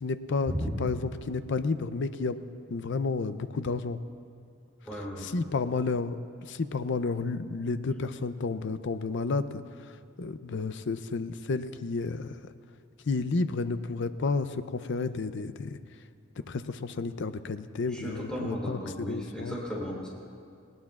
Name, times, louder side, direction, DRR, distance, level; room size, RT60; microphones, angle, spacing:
voice 1, 0.0-0.5 0.8-2.4 2.7-4.0 4.9-6.2 6.4-12.4 13.1-15.8 16.5-19.6, left 4 dB, 60° left, 12 dB, 0.5 m, -31 dB
voice 2, 4.8-5.3 17.9-20.1, equal, 5° left, -5 dB, 3.3 m, -35 dB
19.0 x 19.0 x 2.4 m, 2.3 s
head